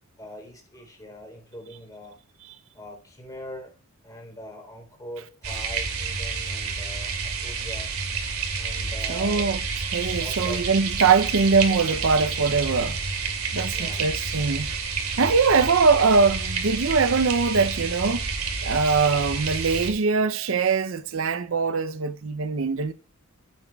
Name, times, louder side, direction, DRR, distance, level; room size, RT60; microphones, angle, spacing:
voice 1, 0.2-2.2 2.7-3.7 4.0-7.9 8.6-9.5 10.1-10.6 11.7-11.8 13.7-14.0 15.5-15.7, equal, 15° left, 3.5 m, -42 dB
sound 1, 5.4-19.9, right 5 dB, 90° right, 2.5 m, -29 dB
voice 2, 9.1-9.6 9.9-13.0 13.5-14.7 15.2-18.3 18.6-22.9, right 4 dB, 65° right, 0.6 m, -22 dB
14.5 x 9.2 x 2.3 m
head